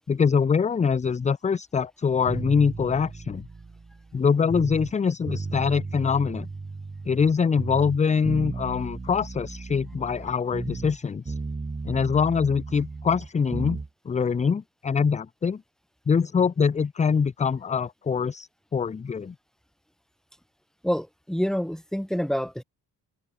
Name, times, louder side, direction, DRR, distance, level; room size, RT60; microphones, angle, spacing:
voice 1, 0.1-3.5 4.1-6.5 7.1-11.3 11.9-15.6 16.1-19.3, left 6 dB, 20° left, 0.4 m, -24 dB
sound 1, 2.3-4.9 5.3-7.3 7.6-11.0 11.3-13.9, right 3 dB, 15° right, 1.4 m, -35 dB
voice 2, 20.8-22.6, equal, ahead, 1.8 m, -27 dB
open air
cardioid pair, 125°, 41 cm